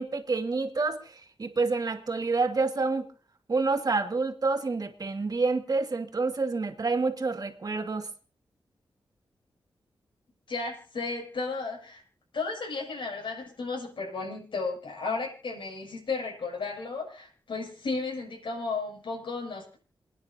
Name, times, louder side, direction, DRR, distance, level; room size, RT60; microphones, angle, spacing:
voice 1, 0.0-3.1 3.5-8.1, right 3 dB, 50° right, 5 dB, 2.2 m, -28 dB
voice 2, 10.5-12.0 12.3-19.8, left 4 dB, 70° left, -1 dB, 7.3 m, -34 dB
28.5 x 9.7 x 2.8 m, 0.39 s
cardioid pair, 60°, 9 cm